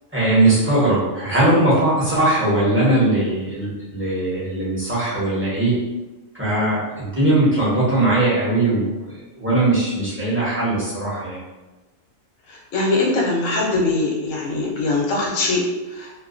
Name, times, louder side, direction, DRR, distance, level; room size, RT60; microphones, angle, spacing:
voice 1, 0.1-5.7 6.4-11.4, right 2 dB, 10° right, -10 dB, 0.7 m, -20 dB
voice 2, 12.5-16.1, left 2 dB, 70° left, -2 dB, 1.0 m, -22 dB
2.4 x 2.2 x 2.4 m, 1.1 s
omnidirectional pair, 1.4 m